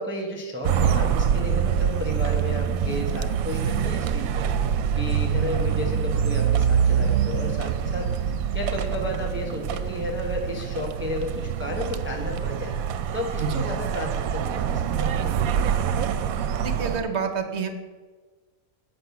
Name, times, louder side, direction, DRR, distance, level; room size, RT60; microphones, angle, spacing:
voice 1, 0.0-12.7 13.1-15.4, left 1 dB, 10° right, 0 dB, 0.9 m, -33 dB
sound 1, 0.6-17.0, right 8 dB, 80° right, 1.0 m, -25 dB
voice 2, 16.6-17.7, right 5 dB, 55° right, 7 dB, 1.0 m, -28 dB
7.9 x 5.5 x 6.9 m, 1.4 s
omnidirectional pair, 1.5 m